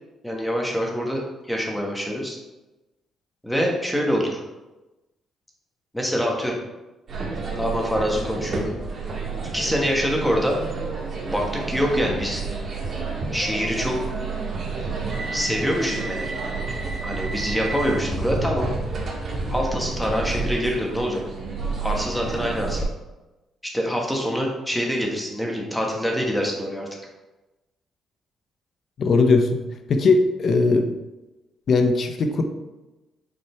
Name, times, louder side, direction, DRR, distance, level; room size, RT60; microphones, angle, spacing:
voice 1, 0.2-2.4 3.4-4.4 5.9-6.6 7.6-8.7 9.4-10.6 11.3-12.4 13.3-14.0 15.3-16.3 17.0-18.7 19.5-21.2 21.8-22.9 23.6-26.9, equal, 5° left, -1 dB, 1.6 m, -25 dB
sound 1, 7.1-22.8, right 3 dB, 45° right, 1.9 m, -30 dB
voice 2, 29.0-29.6 29.9-30.9 31.7-32.4, left 3 dB, 55° left, 7 dB, 0.8 m, -19 dB
6.8 x 4.1 x 4.6 m, 1.1 s
cardioid pair, 90°, 0 cm